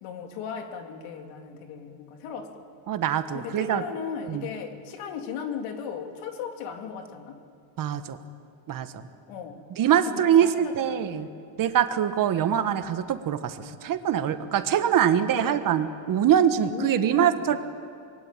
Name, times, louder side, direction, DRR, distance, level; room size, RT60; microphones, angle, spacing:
voice 1, 0.0-2.7 3.3-7.4 9.3-9.6 10.1-11.3 14.5-14.6 15.2-15.6 16.6-17.6, left 7 dB, 80° left, 4 dB, 3.1 m, -37 dB
voice 2, 2.9-3.8 4.3-4.5 7.8-8.2 8.7-8.9 9.8-11.3 11.6-17.6, right 9 dB, 40° right, 9 dB, 1.4 m, -23 dB
25.0 x 21.5 x 9.0 m, 2.3 s
cardioid pair, 145°, 49 cm